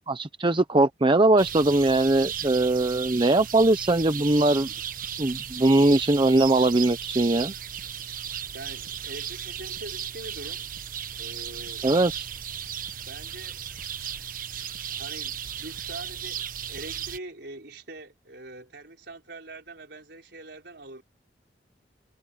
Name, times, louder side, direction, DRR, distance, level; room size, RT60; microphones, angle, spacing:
voice 1, 0.1-4.7 5.2-7.5 11.8-12.3, right 2 dB, 30° right, 0.8 m, -21 dB
sound 1, 1.4-17.2, right 9 dB, 50° right, 1.2 m, -35 dB
voice 2, 8.5-10.6 11.2-11.9 13.0-13.6 14.9-21.0, right 2 dB, 70° right, 5.2 m, -43 dB
head